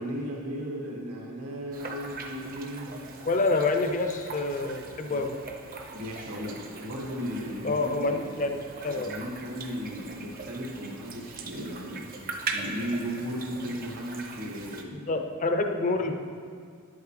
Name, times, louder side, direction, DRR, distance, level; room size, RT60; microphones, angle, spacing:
voice 1, 0.0-3.1 5.1-5.2 5.9-8.4 8.9-12.1 12.5-15.1 16.0-16.1, equal, 80° right, -1 dB, 1.6 m, -36 dB
sound 1, 1.7-14.8, right 3 dB, 40° right, 0.7 m, -41 dB
voice 2, 3.3-5.3 7.6-9.1 14.9-16.1, left 3 dB, 35° left, 6 dB, 0.5 m, -27 dB
10.5 x 8.4 x 3.2 m, 2.1 s
head